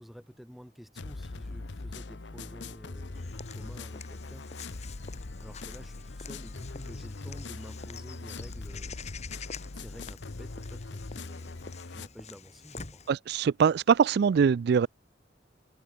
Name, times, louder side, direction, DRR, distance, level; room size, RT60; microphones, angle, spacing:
voice 1, 0.0-4.8 5.4-9.0 9.6-13.0, equal, ahead, 2.3 m, -50 dB
sound 1, 1.0-12.1, left 3 dB, 90° left, 1.0 m, -41 dB
Walk footsteps / Bird vocalization bird call bird song, 3.1-13.1, left 5 dB, 40° left, 1.9 m, -47 dB
voice 2, 13.1-14.9, right 6 dB, 65° right, 0.3 m, -23 dB
head